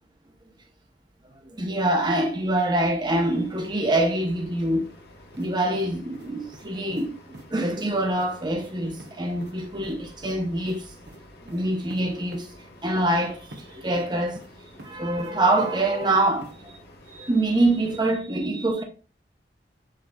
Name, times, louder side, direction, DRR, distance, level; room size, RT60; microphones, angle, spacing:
voice 1, 1.6-4.9 5.4-7.2 7.5-10.8 11.5-12.5 12.8-13.4 13.7-14.4 14.8-16.7 17.1-18.8, right 1 dB, 25° right, 0.7 m, -25 dB
sound 1, 3.1-18.1, left 1 dB, 65° left, 1.4 m, -50 dB
sound 2, 5.3-5.5 5.7-6.7 6.9-7.1 7.3-7.5 7.7-7.9 8.2-8.3 8.6-8.7 9.0-9.1 9.4-9.5 9.8-10.4 10.7-10.8 11.1-11.2 11.5-11.6 11.9-12.0 12.3-12.4 13.5-13.6 13.9-14.5 14.8-15.3 15.6-16.1 16.4-16.5, right 1 dB, 75° right, 1.0 m, -45 dB
7.4 x 3.0 x 2.3 m
head